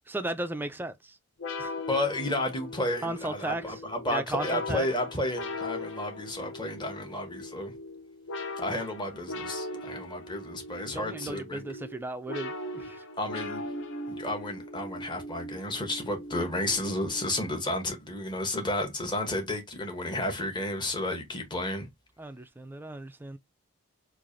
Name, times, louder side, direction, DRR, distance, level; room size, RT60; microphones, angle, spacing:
voice 1, 0.1-1.2 1.6-1.7 3.0-4.9 10.8-13.1 22.2-23.4, right 2 dB, 10° right, 0.3 m, -36 dB
sound 1, 1.4-17.6, left 2 dB, 60° left, 0.6 m, -39 dB
voice 2, 1.9-7.7 8.6-11.6 13.2-13.6 14.1-21.9, left 1 dB, 20° left, 1.0 m, -32 dB
4.6 x 2.5 x 2.6 m
head